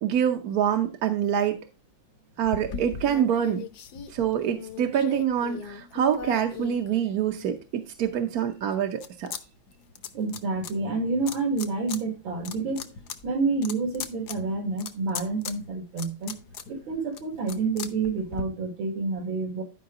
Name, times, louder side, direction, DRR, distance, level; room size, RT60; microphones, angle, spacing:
voice 1, 0.0-1.6 2.4-3.6 4.1-9.3, right 9 dB, 60° right, 1.2 m, -26 dB
sound 1, 2.4-7.5 8.0-9.4 9.7-10.7 11.3-12.0 12.3-18.4, left 7 dB, 60° left, 1.3 m, -39 dB
voice 2, 10.1-12.9 13.2-16.3 16.7-19.6, right 3 dB, 80° right, 2.8 m, -28 dB
12.0 x 5.2 x 3.7 m
omnidirectional pair, 2.1 m